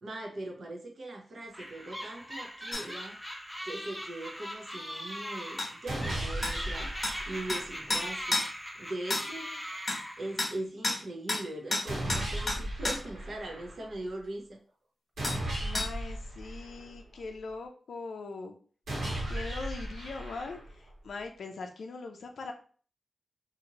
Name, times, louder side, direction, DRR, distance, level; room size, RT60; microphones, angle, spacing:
voice 1, 0.0-3.2 3.6-8.5 8.8-9.9 10.2-14.6, right 1 dB, 60° right, 1 dB, 0.7 m, -40 dB
sound 1, 1.5-10.6, equal, ahead, 0.6 m, -41 dB
sound 2, 2.7-2.9 5.6-5.7 6.4-6.6 7.0-7.2 7.5-7.6 7.9-8.5 9.1-9.3 9.9-10.0 10.4-10.5 10.8-11.0 11.3-11.5 11.7-13.0 15.2-15.4 15.7-15.9, left 2 dB, 40° left, 0.9 m, -31 dB
sound 3, 5.9-7.9 11.9-13.9 15.2-17.2 18.9-20.9, right 1 dB, 80° right, 1.2 m, -36 dB
voice 2, 9.3-9.6 15.6-18.6 19.2-22.5, left 4 dB, 90° left, 4 dB, 0.3 m, -41 dB
2.9 x 2.5 x 2.8 m, 0.42 s
wide cardioid pair, 140°, 0 cm